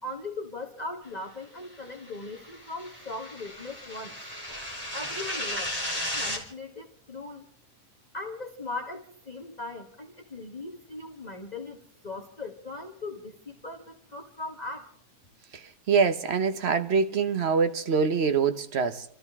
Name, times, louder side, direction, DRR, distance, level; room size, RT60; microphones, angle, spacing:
voice 1, 0.0-4.1 4.9-5.8 6.1-7.5 8.1-11.8 12.0-14.9, left 2 dB, 30° left, 1.5 m, -39 dB
sound 1, 1.9-6.4, left 1 dB, 5° right, 3.0 m, -35 dB
voice 2, 15.9-19.0, right 5 dB, 50° right, 1.1 m, -24 dB
29.5 x 13.5 x 3.6 m
omnidirectional pair, 1.6 m